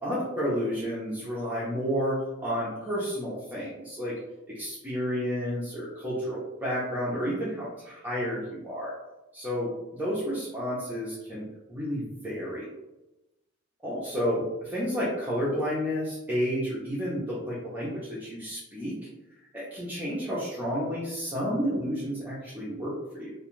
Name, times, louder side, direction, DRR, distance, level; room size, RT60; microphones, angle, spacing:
voice 1, 0.0-4.2 4.5-8.9 9.3-9.7 10.0-12.7 13.8-19.0 19.5-23.3, equal, 10° right, -9 dB, 0.5 m, -31 dB
2.4 x 2.2 x 3.0 m, 0.98 s
head